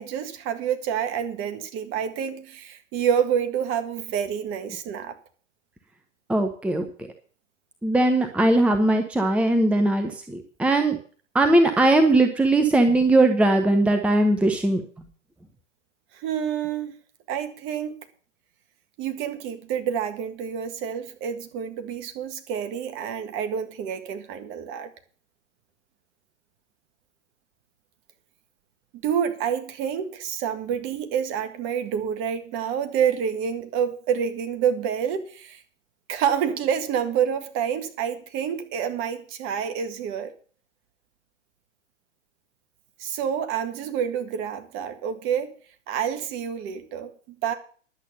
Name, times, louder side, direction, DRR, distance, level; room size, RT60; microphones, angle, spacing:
voice 1, 0.0-5.2 16.1-16.9 17.3-17.9 19.0-24.9 28.9-35.6 36.1-40.3 43.0-45.5 45.9-47.5, right 8 dB, 35° right, 8 dB, 1.8 m, -28 dB
voice 2, 6.3-6.8 7.8-11.0 11.3-14.8, right 2 dB, 5° right, 5 dB, 0.9 m, -20 dB
11.0 x 8.3 x 6.8 m, 0.43 s
figure-of-eight pair, 110°, 38 cm